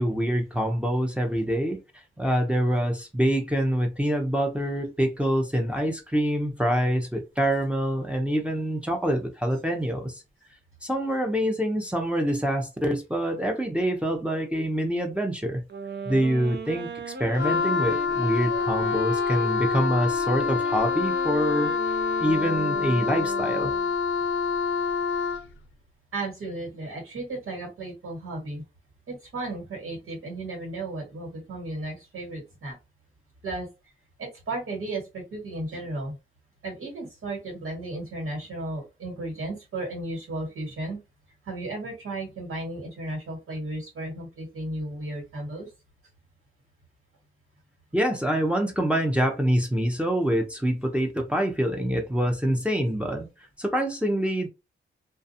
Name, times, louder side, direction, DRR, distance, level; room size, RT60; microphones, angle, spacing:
voice 1, 0.0-1.8 2.2-10.2 10.8-15.6 16.0-21.7 22.2-23.7 47.9-53.3 53.6-54.5, equal, 5° right, 0.7 m, -25 dB
sound 1, 15.7-23.9, right 3 dB, 55° right, 0.7 m, -38 dB
Wind instrument woodwind instrument, 17.3-25.5, left 5 dB, 65° left, 0.5 m, -26 dB
voice 2, 26.1-28.6 29.1-32.8 33.4-33.7 34.2-36.1 36.6-41.0 41.4-45.7, right 2 dB, 80° right, 1.7 m, -34 dB
2.5 x 2.2 x 2.7 m
cardioid pair, 80°, 21 cm